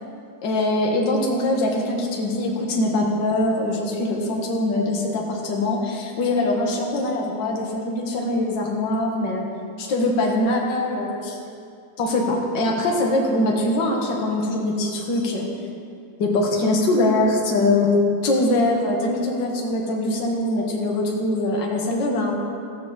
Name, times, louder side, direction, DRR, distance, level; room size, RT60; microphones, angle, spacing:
voice 1, 0.4-9.4 9.8-11.4 12.0-15.5 16.2-18.0 18.2-22.3, left 2 dB, 45° left, -1 dB, 1.8 m, -22 dB
15.5 x 5.4 x 7.3 m, 2.4 s
omnidirectional pair, 3.3 m